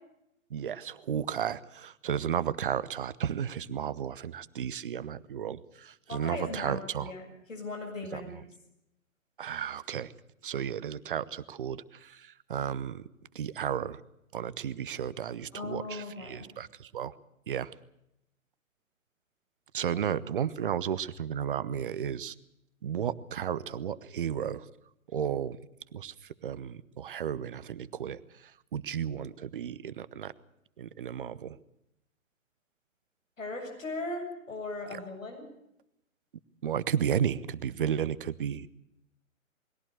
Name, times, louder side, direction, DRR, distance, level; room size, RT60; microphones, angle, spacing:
voice 1, 0.5-7.1 8.1-8.2 9.4-10.1 10.4-13.0 13.3-14.0 14.3-17.1 17.5-17.7 19.7-22.3 22.8-24.6 25.1-25.6 25.9-26.1 26.4-28.2 28.7-30.3 30.8-31.6 34.9-35.0 36.6-38.7, right 8 dB, 40° right, 18 dB, 0.8 m, -33 dB
voice 2, 6.1-7.2 7.5-8.4 15.5-16.5 19.9-20.0 33.4-35.5, left 2 dB, 65° left, 3 dB, 7.3 m, -38 dB
21.5 x 16.5 x 8.0 m, 0.83 s
figure-of-eight pair, 130°, 42 cm